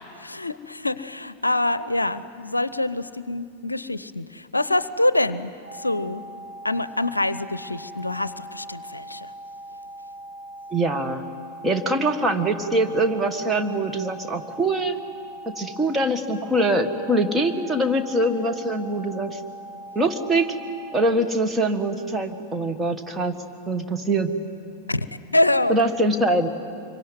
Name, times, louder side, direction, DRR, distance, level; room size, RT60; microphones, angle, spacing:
voice 1, 0.2-6.2 6.6-9.3 24.9-25.1 25.3-25.8, left 1 dB, 85° left, 15 dB, 0.6 m, -25 dB
sound 1, 5.6-21.1, right 1 dB, 85° right, 2.7 m, -41 dB
voice 2, 10.7-11.2 11.6-15.0 15.4-19.4 19.9-20.6 20.9-23.4 23.7-24.3 25.7-26.5, right 1 dB, 15° right, 5 dB, 1.6 m, -23 dB
26.0 x 23.5 x 9.5 m, 2.5 s
figure-of-eight pair, 90°, 0 cm